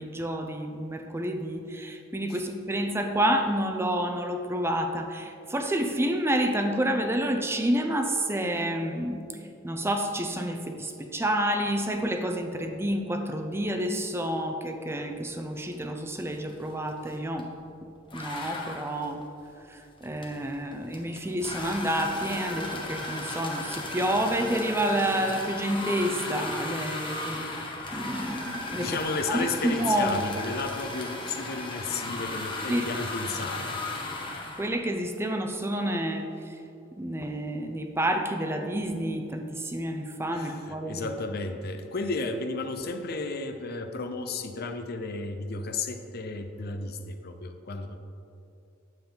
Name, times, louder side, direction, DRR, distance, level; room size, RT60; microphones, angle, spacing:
voice 1, 0.0-9.2 9.6-17.5 18.1-19.2 19.7-27.5 27.9-28.9 29.3-30.1 32.7-32.9 34.6-36.5 37.0-41.1, right 1 dB, 15° right, 5 dB, 0.5 m, -29 dB
sound 1, 15.7-16.0 16.3-17.5 18.1-34.7, left 2 dB, 25° left, 1.0 m, -36 dB
voice 2, 28.7-33.8 40.3-48.0, left 3 dB, 55° left, 7 dB, 0.6 m, -33 dB
9.2 x 7.0 x 3.9 m, 2.6 s
head